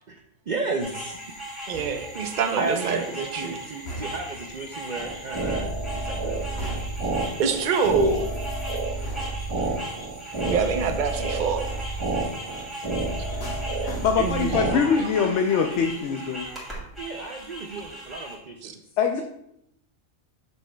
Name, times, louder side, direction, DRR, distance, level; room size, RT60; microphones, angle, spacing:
voice 1, 0.5-1.2 2.6-6.8 14.1-15.8 17.0-18.8, right 3 dB, 90° right, 4 dB, 0.4 m, -33 dB
sound 1, 0.8-18.4, right 1 dB, ahead, 2.3 m, -38 dB
sound 2, 1.7-2.3 3.9-4.4 6.6-7.2 9.0-9.6 10.8-11.3 13.4-14.5 14.9-15.3, equal, 50° left, 1.3 m, -39 dB
voice 2, 1.7-3.6 7.4-8.3 10.4-11.6 16.5-16.6 18.6-18.7, right 5 dB, 50° right, 6 dB, 0.6 m, -25 dB
sound 3, 5.0-14.7, right 2 dB, 25° right, 1.0 m, -30 dB
voice 3, 13.8-16.5 19.0-19.2, left 6 dB, 65° left, 4 dB, 0.8 m, -23 dB
7.7 x 6.2 x 2.2 m, 0.78 s
omnidirectional pair, 1.4 m